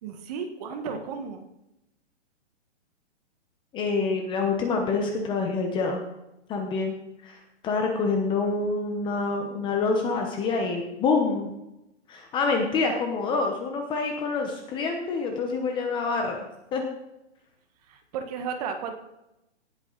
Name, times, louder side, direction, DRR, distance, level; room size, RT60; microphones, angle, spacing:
voice 1, 0.0-1.4 17.9-18.9, right 6 dB, 35° right, 6 dB, 1.6 m, -34 dB
voice 2, 3.7-6.0 6.5-6.9 7.2-7.4 7.6-11.5 12.1-16.4 16.7-16.9, left 4 dB, 15° left, 3 dB, 0.9 m, -26 dB
18.0 x 8.4 x 4.0 m, 0.91 s
hypercardioid pair, 160°, 35 cm